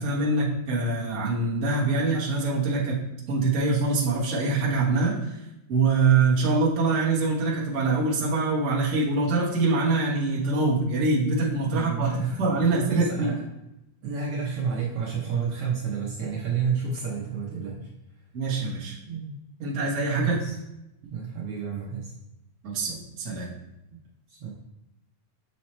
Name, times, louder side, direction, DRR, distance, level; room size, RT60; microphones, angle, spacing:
voice 1, 0.0-3.0 3.3-5.4 5.7-13.4 18.3-19.0 19.6-20.4 22.6-23.5, right 3 dB, 45° right, -6 dB, 0.9 m, -24 dB
voice 2, 11.7-12.5 12.9-13.4 14.0-17.9 19.1-20.6 21.1-22.1 24.3-24.5, right 6 dB, 65° right, -4 dB, 1.6 m, -30 dB
7.4 x 2.9 x 4.3 m, 0.90 s
omnidirectional pair, 3.4 m